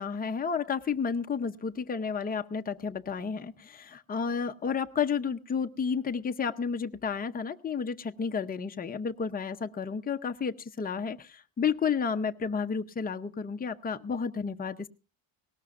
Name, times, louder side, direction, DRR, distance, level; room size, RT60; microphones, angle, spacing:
voice 1, 0.0-14.9, left 6 dB, 20° left, 6 dB, 0.6 m, -31 dB
19.0 x 18.5 x 2.5 m, 0.32 s
cardioid pair, 145°, 48 cm